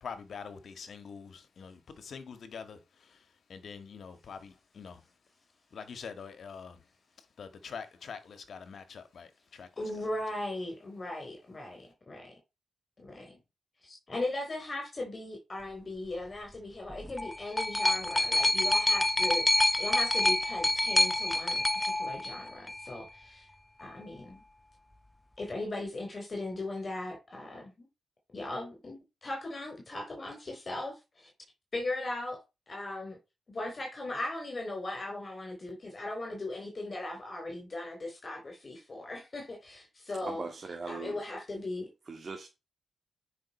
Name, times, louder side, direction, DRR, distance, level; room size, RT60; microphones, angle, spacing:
voice 1, 0.0-2.8 3.5-5.0 5.7-6.8 7.4-9.7, left 6 dB, 65° left, 1.6 m, -44 dB
voice 2, 9.8-12.3 13.0-13.4 13.8-23.5 23.8-24.4 25.4-27.9 28.3-31.3 31.7-32.4 32.7-33.2 33.5-40.5 40.8-41.9, left 2 dB, 40° left, 4.1 m, -38 dB
sound 1, 16.9-22.9 23.8-23.9, left 1 dB, 15° left, 0.7 m, -27 dB
voice 3, 40.2-41.2 42.1-42.5, right 4 dB, 45° right, 2.1 m, -40 dB
9.5 x 5.3 x 4.3 m
supercardioid pair, 50°, 0 cm